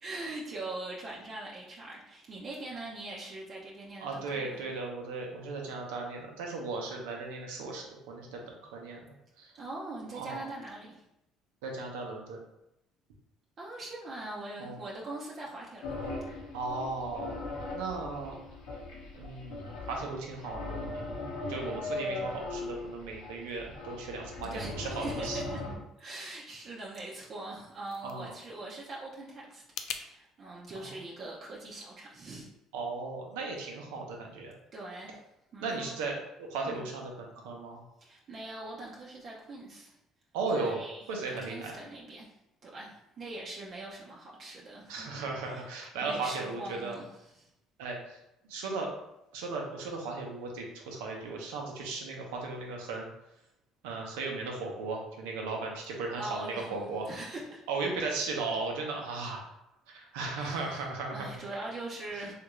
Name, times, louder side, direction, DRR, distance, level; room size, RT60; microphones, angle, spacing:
voice 1, 0.0-4.6 9.5-11.0 13.6-15.9 24.4-25.6 26.0-32.5 34.7-35.2 35.5-35.9 36.6-36.8 38.0-40.0 40.5-45.7 46.0-47.5 56.2-57.6 60.4-62.3, right 2 dB, 50° right, -3 dB, 0.7 m, -42 dB
voice 2, 4.0-9.5 10.1-10.5 11.6-12.4 14.6-14.8 16.5-17.3 17.7-18.4 19.2-21.2 21.5-25.4 28.0-28.3 30.7-30.9 32.7-34.5 35.6-37.8 40.3-40.8 41.1-41.7 44.9-47.0 47.8-48.2 48.5-48.9 49.3-53.1 53.8-57.1 57.7-59.5 59.9-61.6 62.1-62.3, right 3 dB, 85° right, 0 dB, 0.7 m, -36 dB
sound 1, 15.8-25.8, left 2 dB, 85° left, 0.9 m, -39 dB
sound 2, 27.4-30.1, left 8 dB, 70° left, 0.3 m, -44 dB
3.3 x 2.5 x 3.1 m, 0.84 s
supercardioid pair, 80°, 0 cm